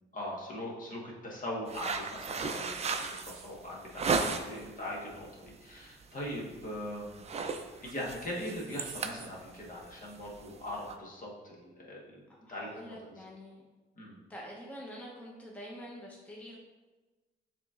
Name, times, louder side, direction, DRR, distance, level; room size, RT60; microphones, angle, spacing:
voice 1, 0.1-12.2 12.5-13.2 14.0-14.2, left 1 dB, 45° left, -3 dB, 1.3 m, -41 dB
sound 1, 1.7-4.7 5.1-5.5 5.8-6.0 6.4-6.8 7.0-10.9, right 4 dB, 35° right, 0.4 m, -35 dB
voice 2, 12.4-13.6 14.3-16.6, equal, 5° left, -3 dB, 0.8 m, -46 dB
6.7 x 3.0 x 2.4 m, 1.2 s
cardioid pair, 90°, 20 cm